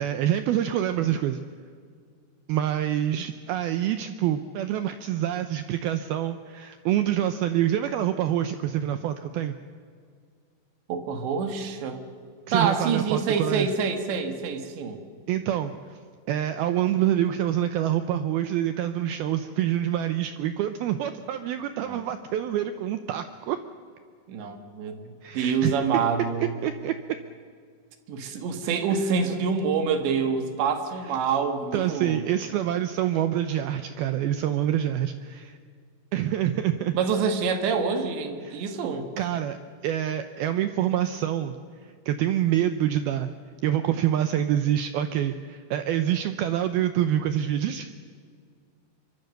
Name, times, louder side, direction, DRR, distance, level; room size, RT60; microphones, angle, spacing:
voice 1, 0.0-1.4 2.5-9.6 12.5-13.7 15.3-16.0 16.3-23.6 25.2-25.8 26.4-26.9 31.7-35.6 36.1-37.0 38.4-38.6 39.2-39.6 39.8-41.6 41.8-43.3 43.6-47.9, right 11 dB, 90° right, 9 dB, 2.1 m, -26 dB
voice 2, 10.9-12.0 12.5-15.0 21.9-22.0 24.3-26.5 28.1-32.2 36.9-39.1, right 5 dB, 70° right, 6 dB, 3.9 m, -26 dB
25.0 x 24.0 x 6.7 m, 2.1 s
omnidirectional pair, 5.4 m